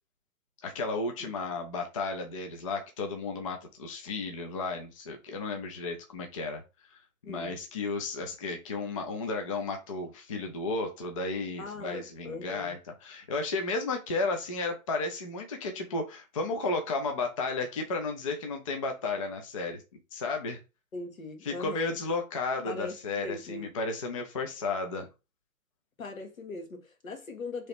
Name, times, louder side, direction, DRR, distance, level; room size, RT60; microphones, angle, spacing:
voice 1, 0.6-6.6 7.3-19.8 20.1-20.6 21.4-25.1, left 3 dB, 25° left, 0.4 m, -33 dB
voice 2, 11.6-12.7 20.9-21.9 22.6-22.9 23.2-23.7 26.0-27.7, left 3 dB, 70° left, 1.5 m, -39 dB
3.1 x 2.8 x 4.2 m
figure-of-eight pair, 130°, 42 cm